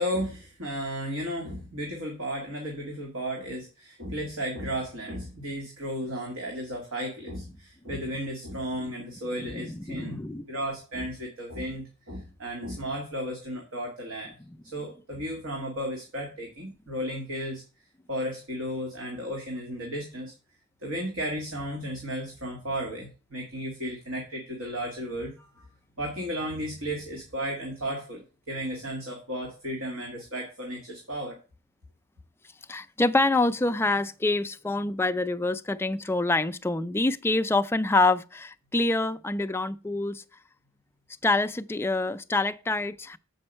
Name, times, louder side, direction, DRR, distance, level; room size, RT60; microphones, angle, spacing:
voice 1, 0.0-14.4 14.7-17.6 18.1-20.3 20.8-25.7 26.0-31.4, equal, 70° right, 2.1 m, -34 dB
voice 2, 9.4-10.4 14.5-14.6 32.7-40.2 41.2-43.2, left 2 dB, 10° left, 0.4 m, -26 dB
7.7 x 5.3 x 5.4 m
head